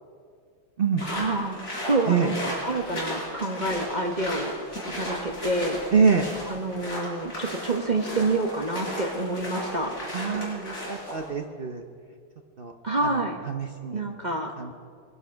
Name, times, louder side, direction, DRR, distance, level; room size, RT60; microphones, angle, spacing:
sound 1, 1.0-11.3, equal, 35° left, 5.7 m, -35 dB
voice 1, 1.0-4.6 4.9-5.8 6.5-9.9 12.8-13.4 13.9-14.7, right 2 dB, 35° right, 1 dB, 0.7 m, -28 dB
voice 2, 5.9-6.3 10.1-11.8 12.6-12.7 13.5-14.0 14.6-14.7, right 5 dB, 70° right, 4 dB, 0.5 m, -25 dB
22.0 x 11.5 x 5.8 m, 2.2 s
omnidirectional pair, 2.2 m